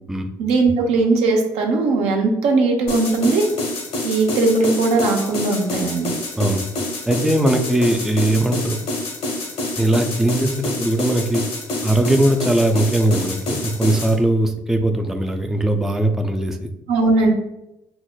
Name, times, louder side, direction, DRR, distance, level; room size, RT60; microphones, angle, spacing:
voice 1, 0.4-3.4 4.0-6.1 16.9-17.3, right 3 dB, 70° right, 2 dB, 0.6 m, -18 dB
sound 1, 2.9-14.1, left 2 dB, 65° left, 0.9 m, -27 dB
voice 2, 7.1-8.8 9.8-11.4 11.8-16.6, right 1 dB, 5° right, 5 dB, 0.3 m, -19 dB
4.6 x 2.0 x 2.2 m, 0.88 s
hypercardioid pair, 55°, 11 cm